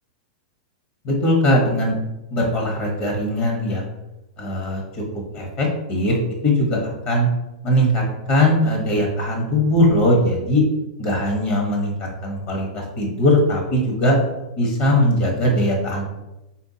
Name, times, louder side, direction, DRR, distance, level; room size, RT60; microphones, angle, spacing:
voice 1, 1.0-1.9 2.3-3.9 4.4-5.0 5.3-6.2 6.4-7.3 7.6-10.6 11.0-14.2 14.6-16.1, left 1 dB, 45° left, 0 dB, 1.2 m, -20 dB
4.4 x 3.5 x 2.7 m, 0.96 s
hypercardioid pair, 125°, 4 cm